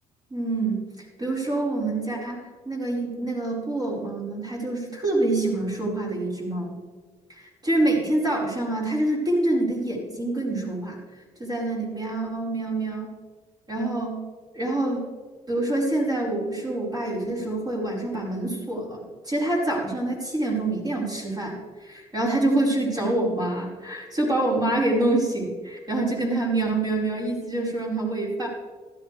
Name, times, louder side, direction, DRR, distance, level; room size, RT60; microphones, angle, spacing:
voice 1, 0.3-6.8 7.3-11.0 11.4-13.2 13.7-14.2 14.5-15.1 15.5-28.5, right 2 dB, 30° right, -3 dB, 4.8 m, -26 dB
16.0 x 13.5 x 3.3 m, 1.5 s
cardioid pair, 110°, 14 cm